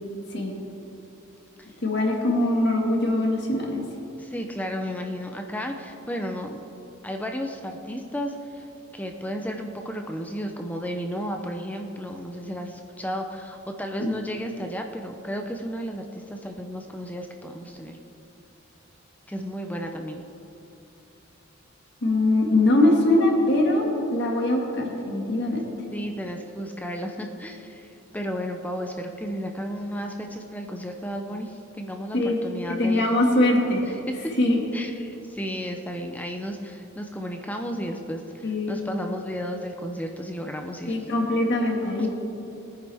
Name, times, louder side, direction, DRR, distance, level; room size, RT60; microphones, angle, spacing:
voice 1, 1.8-3.8 14.0-14.1 22.0-25.7 32.1-32.4 32.8-33.8 34.4-34.6 38.4-38.8 40.9-42.1, left 1 dB, 55° left, 0 dB, 2.0 m, -22 dB
voice 2, 4.2-6.6 7.0-8.7 8.9-18.0 19.3-20.2 25.9-27.9 28.1-33.1 33.8-34.3 34.7-41.1 42.0-42.1, equal, 10° left, 4 dB, 0.6 m, -33 dB
21.0 x 9.6 x 3.5 m, 3.0 s
head